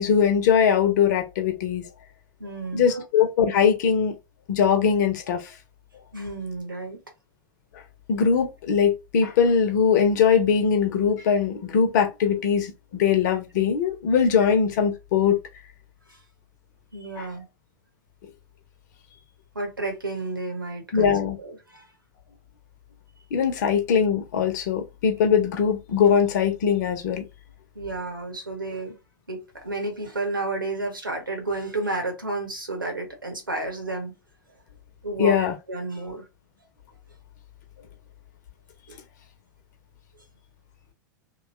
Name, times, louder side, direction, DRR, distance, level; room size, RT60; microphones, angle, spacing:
voice 1, 0.0-1.8 2.7-4.2 4.5-5.4 8.1-15.4 17.2-17.3 20.9-21.4 23.3-27.2 35.2-35.5, left 7 dB, 60° left, 0.8 m, -21 dB
voice 2, 2.4-3.0 6.1-7.0 16.1-16.2 16.9-17.5 19.5-21.8 27.7-29.0 29.3-34.1 35.0-36.3 38.9-39.0, right 2 dB, 90° right, 1.1 m, -31 dB
3.0 x 2.4 x 3.1 m
figure-of-eight pair, 95°, 11 cm